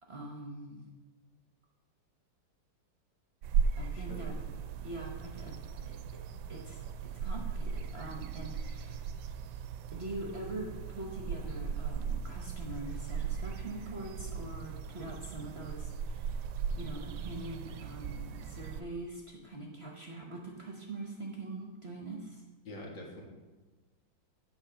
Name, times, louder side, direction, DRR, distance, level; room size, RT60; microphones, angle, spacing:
voice 1, 0.0-0.9 3.7-6.2 6.5-9.0 9.9-16.5 16.7-22.4, right 2 dB, 45° right, 0 dB, 0.9 m, -43 dB
sound 1, 3.4-18.8, right 6 dB, 75° right, 1.0 m, -37 dB
voice 2, 22.7-23.2, left 1 dB, 75° left, -1 dB, 2.5 m, -45 dB
8.8 x 4.7 x 6.8 m, 1.2 s
omnidirectional pair, 2.0 m